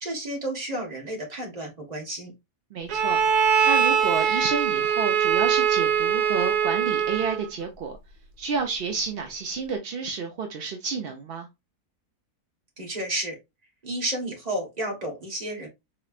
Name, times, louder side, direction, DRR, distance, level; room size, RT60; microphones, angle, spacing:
voice 1, 0.0-2.3 12.8-13.4 13.8-15.7, right 1 dB, 30° right, 1.4 m, -31 dB
voice 2, 2.7-8.0 8.4-11.5, right 5 dB, 60° right, 0.6 m, -30 dB
Bowed string instrument, 2.9-7.5, right 7 dB, 85° right, 1.2 m, -22 dB
4.3 x 3.0 x 2.4 m
omnidirectional pair, 1.6 m